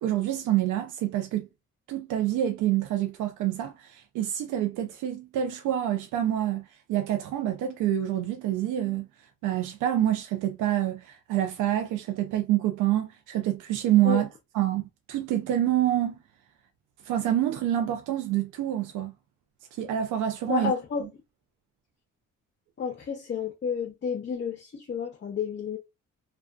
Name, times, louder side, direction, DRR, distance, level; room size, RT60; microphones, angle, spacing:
voice 1, 0.0-1.5 1.9-9.1 9.4-14.3 14.5-14.8 15.1-16.2 17.0-19.1 19.8-20.7, right 12 dB, 85° right, 0.5 m, -27 dB
voice 2, 20.5-21.0 22.8-25.8, left 6 dB, 40° left, 0.6 m, -30 dB
2.4 x 2.2 x 2.3 m
cardioid pair, 90°, 30 cm